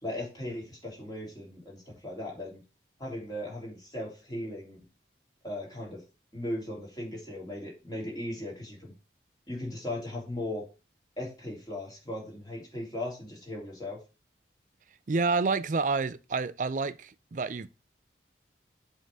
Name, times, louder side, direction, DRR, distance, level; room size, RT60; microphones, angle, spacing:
voice 1, 0.0-2.6 3.0-4.8 5.4-6.0 6.3-8.9 9.5-10.6 11.2-14.0, left 1 dB, 20° left, 3.1 m, -37 dB
voice 2, 15.1-17.7, right 4 dB, 45° right, 0.4 m, -29 dB
7.7 x 3.8 x 6.0 m
head